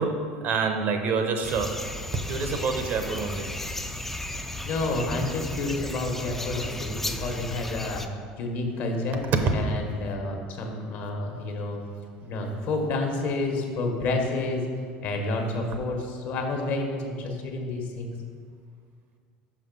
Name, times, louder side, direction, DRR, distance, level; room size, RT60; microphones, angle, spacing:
voice 1, 0.0-1.8 2.3-3.8 9.4-9.5, right 4 dB, 50° right, 6 dB, 0.8 m, -27 dB
sound 1, 1.4-8.1, left 1 dB, 5° left, 0.4 m, -34 dB
voice 2, 4.3-8.0 8.4-9.2 9.5-11.8 12.2-14.6 15.0-18.1, left 2 dB, 60° left, 2 dB, 1.2 m, -29 dB
5.7 x 5.3 x 5.3 m, 2.1 s
supercardioid pair, 105°, 4 cm